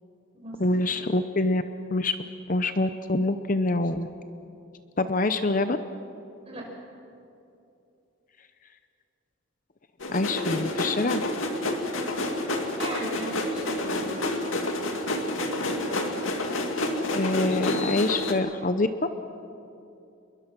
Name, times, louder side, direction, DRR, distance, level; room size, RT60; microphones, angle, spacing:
voice 1, 0.6-1.6 1.9-2.2 2.5-4.1 5.0-5.8 10.1-11.2 17.1-18.9, left 2 dB, 40° left, 10 dB, 0.7 m, -25 dB
sound 1, 10.0-18.3, left 1 dB, 75° left, 2.3 m, -29 dB
voice 2, 12.7-14.0, right 1 dB, 30° right, -1 dB, 5.3 m, -38 dB
28.5 x 22.0 x 6.1 m, 2.7 s
head